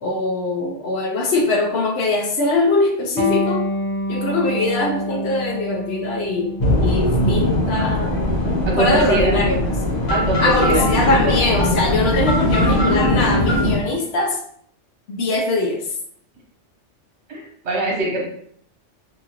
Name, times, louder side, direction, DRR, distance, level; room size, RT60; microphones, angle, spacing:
voice 1, 0.0-3.6 4.1-6.5 6.8-8.1 8.8-9.6 10.4-14.4 15.1-15.8, left 2 dB, 65° left, 2 dB, 0.8 m, -21 dB
Electric guitar, 3.2-10.3, left 1 dB, 35° right, 0.5 m, -29 dB
sound 1, 6.6-13.8, left 1 dB, 90° left, 1.2 m, -20 dB
voice 2, 8.7-9.4 10.1-10.9 17.3-18.3, right 1 dB, 65° right, -1 dB, 1.1 m, -22 dB
2.8 x 2.4 x 2.8 m, 0.63 s
omnidirectional pair, 1.2 m